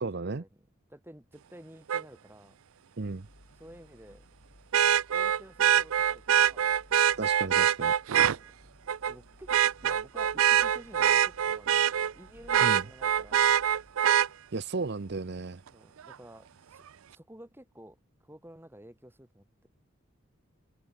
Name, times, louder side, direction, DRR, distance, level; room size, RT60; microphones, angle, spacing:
voice 1, 0.0-0.4 3.0-3.3 7.2-7.9 12.6-12.8 14.5-15.6, right 3 dB, 55° right, 0.7 m, -34 dB
voice 2, 0.9-2.6 3.5-4.3 5.1-6.8 8.2-8.6 9.1-9.5 9.8-11.9 12.1-13.6 15.7-19.5, equal, 10° right, 3.5 m, -52 dB
Vehicle horn car horn honking, 1.9-2.0 4.7-8.4 8.9-9.1 9.5-12.1 12.5-14.3 16.1-16.2, right 9 dB, 90° right, 0.5 m, -24 dB
sound 1, 3.0-15.6, left 1 dB, 65° left, 2.8 m, -58 dB
head